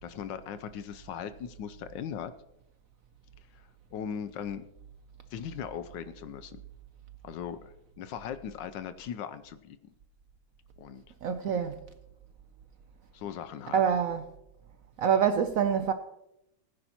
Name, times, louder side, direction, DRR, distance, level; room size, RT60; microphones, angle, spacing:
voice 1, 0.0-2.3 3.5-4.6 5.3-6.6 7.2-9.8 10.8-11.0 13.1-13.8, left 8 dB, 75° left, 1.2 m, -39 dB
voice 2, 11.2-11.8 13.7-14.2 15.0-15.9, right 7 dB, 85° right, 0.7 m, -26 dB
19.5 x 10.0 x 2.9 m
omnidirectional pair, 2.1 m